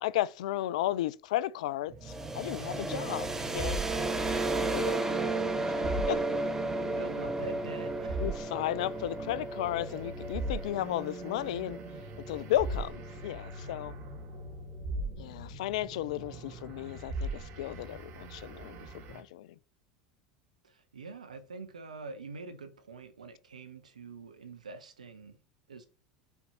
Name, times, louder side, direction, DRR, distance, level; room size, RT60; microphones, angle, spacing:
voice 1, 0.0-3.3 3.5-3.8 4.7-5.4 5.7-6.3 8.2-11.8 12.2-14.0 15.2-19.5, left 14 dB, 70° left, 0.4 m, -34 dB
sound 1, 1.9-19.2, right 2 dB, 50° right, 2.4 m, -40 dB
sound 2, 2.1-13.7, right 2 dB, 10° right, 1.0 m, -34 dB
voice 2, 6.6-8.3 20.6-25.4 25.7-25.9, right 4 dB, 90° right, 1.0 m, -45 dB
6.9 x 4.5 x 4.2 m
hypercardioid pair, 85°, 4 cm